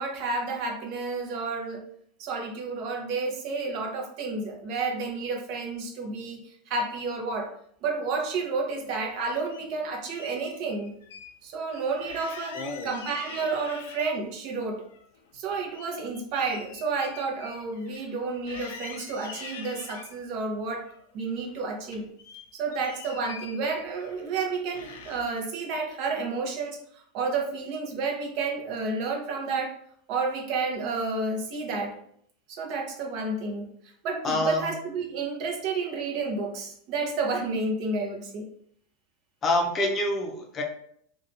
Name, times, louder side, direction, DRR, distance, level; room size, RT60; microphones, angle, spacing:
voice 1, 0.0-1.8 2.2-7.5 7.8-10.9 11.4-14.8 15.3-20.8 21.1-22.1 22.5-29.7 30.1-32.0 32.5-33.7 34.0-38.5, right 4 dB, 50° right, 1 dB, 0.7 m, -31 dB
sound 1, 8.6-9.7 10.1-11.3 11.6-11.7 12.0-14.4 14.8-18.2 18.5-20.1 20.7-21.6 21.9-24.4 24.7-25.4, left 6 dB, 85° left, 0.4 m, -45 dB
voice 2, 12.5-12.9 34.2-34.7 39.4-40.6, left 1 dB, 25° left, 1 dB, 0.6 m, -26 dB
2.8 x 2.3 x 2.5 m, 0.66 s
supercardioid pair, 130°, 0 cm